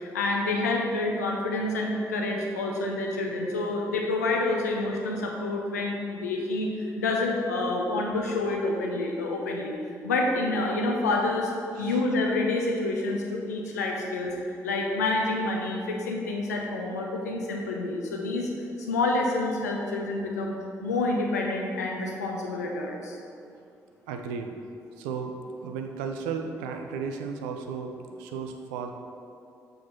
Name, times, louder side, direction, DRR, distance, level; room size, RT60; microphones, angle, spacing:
voice 1, 0.0-6.7 7.0-9.8 10.0-11.5 11.8-18.5 18.9-20.5 20.8-23.2, left 2 dB, 80° left, 0 dB, 0.6 m, -28 dB
voice 2, 24.1-24.6 25.0-25.3 25.6-27.9 28.2-28.9, right 6 dB, 70° right, 5 dB, 0.5 m, -34 dB
7.1 x 3.9 x 4.4 m, 2.5 s
figure-of-eight pair, 40°, 9 cm